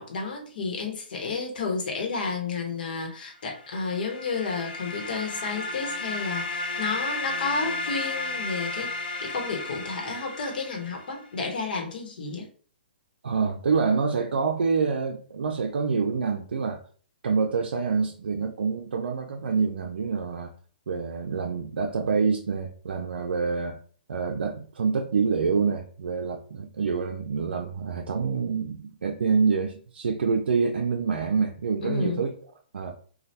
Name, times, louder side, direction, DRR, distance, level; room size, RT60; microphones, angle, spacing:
voice 1, 0.0-8.9 9.2-12.5 31.8-32.2, left 4 dB, 60° left, 1 dB, 1.0 m, -31 dB
sound 1, 3.5-11.3, left 2 dB, 90° left, 1.2 m, -33 dB
voice 2, 13.2-16.8 17.2-20.5 20.9-23.8 24.1-32.3 32.7-33.0, right 5 dB, 90° right, 2 dB, 0.4 m, -26 dB
2.8 x 2.3 x 3.2 m, 0.43 s
hypercardioid pair, 155°, 6 cm